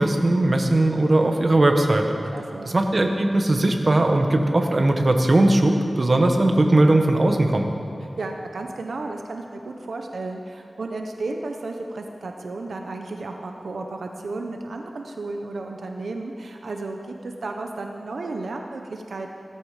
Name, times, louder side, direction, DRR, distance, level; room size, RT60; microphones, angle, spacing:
voice 1, 0.0-2.2 2.6-7.7, right 1 dB, 45° right, 4 dB, 1.4 m, -19 dB
voice 2, 2.3-2.7 8.2-19.4, right 2 dB, 90° right, 3 dB, 0.9 m, -33 dB
17.0 x 14.0 x 5.1 m, 2.5 s
wide cardioid pair, 75°, 0 cm